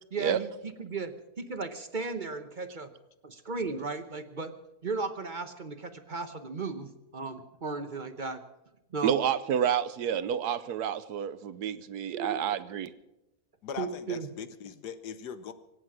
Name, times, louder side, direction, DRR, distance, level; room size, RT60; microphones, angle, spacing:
voice 1, 0.1-2.9 3.2-4.6 4.8-8.4 8.9-9.2 12.1-12.4 13.8-14.3, right 4 dB, 40° right, 9 dB, 0.8 m, -35 dB
voice 2, 9.0-12.9, right 9 dB, 80° right, 15 dB, 1.3 m, -29 dB
voice 3, 13.6-15.5, left 7 dB, 85° left, 12 dB, 1.6 m, -40 dB
25.0 x 8.5 x 6.1 m, 0.93 s
omnidirectional pair, 1.7 m